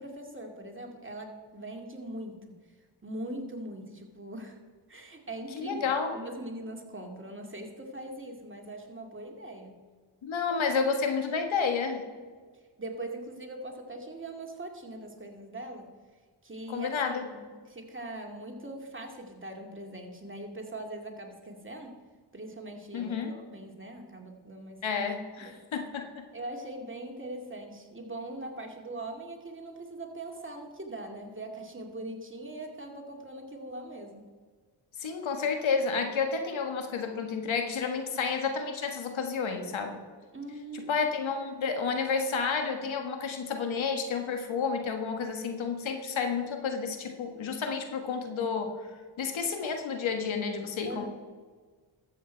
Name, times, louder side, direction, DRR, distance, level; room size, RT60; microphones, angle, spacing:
voice 1, 0.0-2.5 3.0-4.6 4.9-9.8 12.8-15.9 16.4-22.0 22.3-24.8 25.4-25.6 26.3-34.3 40.3-41.1 50.8-51.1, right 1 dB, 25° right, 2 dB, 2.3 m, -41 dB
voice 2, 5.5-6.1 10.2-12.0 16.7-17.3 22.9-23.3 24.8-26.2 35.0-40.0 40.7-48.8 49.2-51.1, left 5 dB, 70° left, 5 dB, 1.5 m, -30 dB
13.0 x 8.0 x 4.5 m, 1.5 s
supercardioid pair, 50°, 48 cm